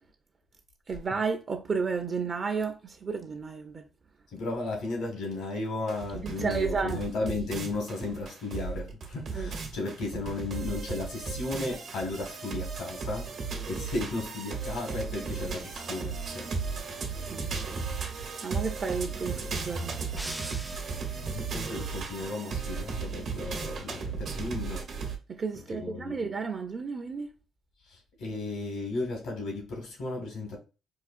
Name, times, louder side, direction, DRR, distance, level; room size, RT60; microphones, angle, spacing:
voice 1, 0.9-3.9 6.2-7.0 9.3-9.5 17.3-17.5 18.4-20.0 25.3-27.3, right 5 dB, 40° right, 0.6 m, -32 dB
voice 2, 4.3-16.5 20.7-20.8 21.2-24.8 25.7-26.1 27.9-30.6, left 2 dB, 80° left, 1.7 m, -35 dB
sound 1, 5.9-25.1, right 5 dB, 65° right, 1.0 m, -35 dB
sound 2, 20.2-21.4, equal, ahead, 0.3 m, -42 dB
4.9 x 2.3 x 2.5 m
cardioid pair, 90°, 0 cm